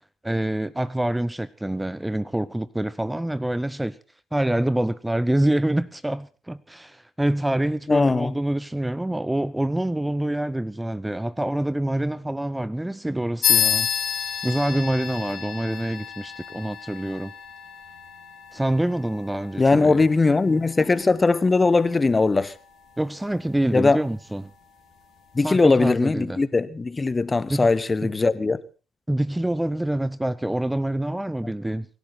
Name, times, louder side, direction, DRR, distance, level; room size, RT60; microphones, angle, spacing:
voice 1, 0.2-4.0 4.3-13.9 14.4-17.3 18.5-20.0 23.0-24.5 25.4-26.4 27.5-27.7 28.0-28.1 29.1-31.9, right 1 dB, 10° right, 0.7 m, -26 dB
voice 2, 7.9-8.3 19.6-22.5 23.7-24.0 25.3-28.6, left 3 dB, 25° left, 1.3 m, -20 dB
sound 1, 13.4-23.4, left 8 dB, 60° left, 3.0 m, -30 dB
25.0 x 12.0 x 4.3 m
hypercardioid pair, 50°, 0 cm